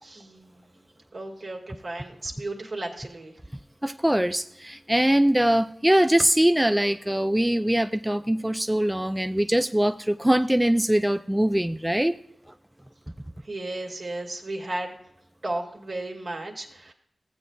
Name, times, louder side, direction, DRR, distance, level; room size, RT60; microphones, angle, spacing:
voice 1, 0.0-0.8 1.1-3.3 13.4-14.9 15.4-16.9, right 2 dB, 70° right, 0 dB, 1.9 m, -34 dB
voice 2, 3.8-12.2, right 1 dB, 10° right, 9 dB, 0.4 m, -22 dB
15.5 x 8.0 x 2.3 m, 0.74 s
cardioid pair, 45°, 0 cm